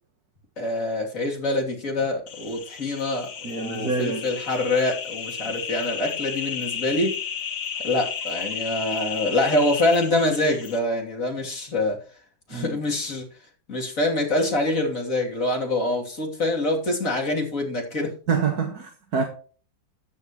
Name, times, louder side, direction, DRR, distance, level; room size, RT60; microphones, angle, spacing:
voice 1, 0.6-7.1 7.8-12.0 12.5-13.3 13.7-18.1, left 2 dB, 45° left, 3.4 m, -25 dB
sound 1, 2.3-10.8, left 7 dB, 80° left, 2.3 m, -33 dB
voice 2, 3.4-4.3 12.5-12.8 18.3-19.2, right 5 dB, 55° right, 1.9 m, -26 dB
13.5 x 9.3 x 3.1 m
omnidirectional pair, 2.0 m